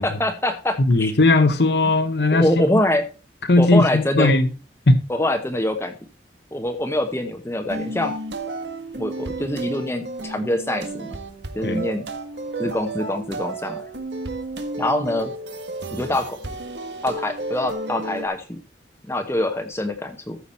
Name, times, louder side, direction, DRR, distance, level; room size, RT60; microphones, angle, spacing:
voice 1, 0.0-1.1 2.3-3.1 3.6-4.3 5.1-5.9 6.5-8.1 9.0-11.1 11.5-12.0 12.6-13.8 14.8-15.3 15.9-16.4 17.0-18.6 19.1-20.4, left 1 dB, 15° left, 0.9 m, -24 dB
voice 2, 0.8-2.5 3.5-4.5 4.9-5.0 11.6-11.9, left 2 dB, 70° left, 1.0 m, -17 dB
sound 1, 7.7-18.3, right 2 dB, 85° right, 1.6 m, -32 dB
14.0 x 6.1 x 4.2 m
head